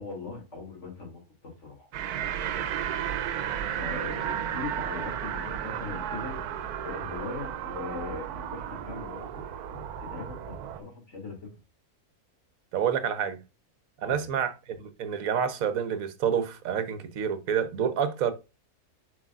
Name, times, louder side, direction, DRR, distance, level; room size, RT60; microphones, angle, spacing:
voice 1, 0.0-1.9 3.8-6.4 6.8-11.6 14.1-14.3, left 3 dB, 50° left, 2.8 m, -40 dB
sound 1, 1.9-10.8, right 9 dB, 85° right, 1.2 m, -33 dB
voice 2, 12.7-13.4 14.0-18.3, right 8 dB, 70° right, 1.3 m, -28 dB
7.6 x 5.3 x 2.4 m
omnidirectional pair, 1.6 m